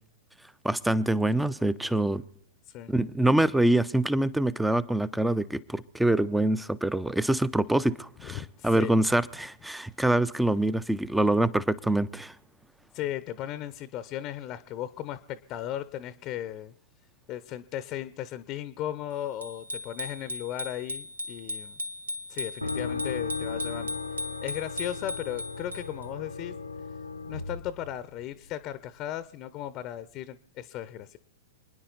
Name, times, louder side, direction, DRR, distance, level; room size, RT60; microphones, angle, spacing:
voice 1, 0.6-2.2 2.9-12.3, right 1 dB, 5° right, 0.6 m, -25 dB
voice 2, 8.2-8.9 12.9-16.7 17.3-21.8 22.3-24.0 24.4-26.5 27.3-31.2, left 12 dB, 35° left, 0.7 m, -36 dB
Bicycle bell, 19.4-26.1, left 2 dB, 80° right, 1.0 m, -37 dB
sound 1, 22.6-28.5, left 4 dB, 85° left, 1.0 m, -36 dB
28.0 x 10.0 x 4.0 m
figure-of-eight pair, 105°, 0 cm